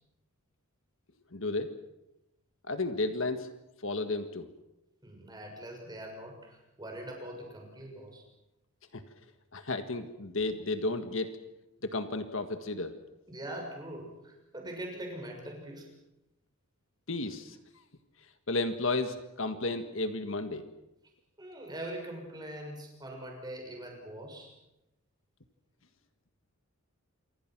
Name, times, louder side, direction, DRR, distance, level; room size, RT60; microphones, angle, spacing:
voice 1, 1.3-1.7 2.7-3.5 3.8-4.5 8.9-9.0 9.5-11.4 11.8-12.9 17.1-17.6 18.5-20.7, left 2 dB, 60° left, 8 dB, 1.7 m, -32 dB
voice 2, 5.0-8.2 13.3-15.9 21.4-24.5, right 1 dB, 20° right, 1 dB, 6.6 m, -42 dB
28.0 x 25.5 x 6.1 m, 0.91 s
head